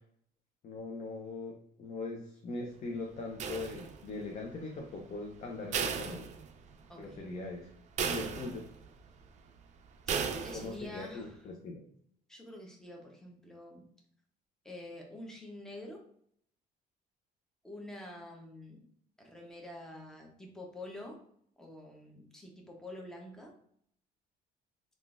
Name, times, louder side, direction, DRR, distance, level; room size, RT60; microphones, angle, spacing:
voice 1, 0.6-6.3 7.0-7.7 8.1-8.7 10.5-11.8, left 3 dB, 45° left, 1 dB, 0.6 m, -41 dB
sound 1, 3.4-4.2 5.7-6.9 7.2-7.3 8.0-8.9 10.1-10.9, right 6 dB, 45° right, 0.4 m, -35 dB
voice 2, 6.9-7.2 10.1-11.4 12.3-13.9 14.6-16.1 17.6-18.8 19.2-21.2 21.6-23.5, left 1 dB, 5° left, 0 dB, 0.7 m, -47 dB
3.7 x 2.4 x 2.4 m, 0.66 s
cardioid pair, 110°, 17 cm